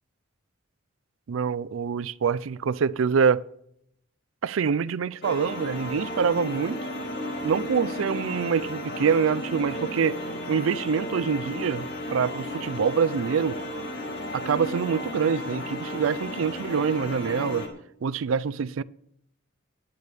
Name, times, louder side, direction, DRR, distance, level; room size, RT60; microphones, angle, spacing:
voice 1, 1.3-3.4 4.4-6.8 7.4-10.2 10.5-13.6 14.3-17.7 18.0-18.8, right 6 dB, 75° right, 0.4 m, -25 dB
sound 1, 5.2-17.7, left 1 dB, 55° left, 1.8 m, -34 dB
19.5 x 8.2 x 3.5 m
head